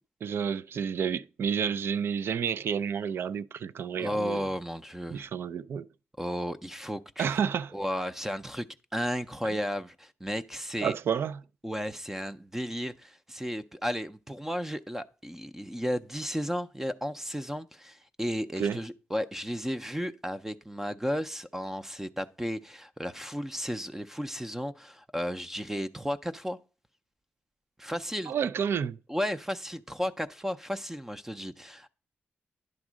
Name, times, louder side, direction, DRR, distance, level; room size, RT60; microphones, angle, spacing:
voice 1, 0.2-4.4 5.1-5.9 7.2-7.7 9.4-9.5 10.8-11.4 18.6-18.8 28.3-29.0, right 7 dB, 70° right, 0.4 m, -30 dB
voice 2, 3.9-5.3 6.2-7.4 7.7-8.7 8.9-10.9 11.6-26.6 27.8-28.3 29.1-31.9, equal, 10° right, 0.5 m, -34 dB
10.5 x 3.6 x 6.1 m
wide cardioid pair, 120°, 4 cm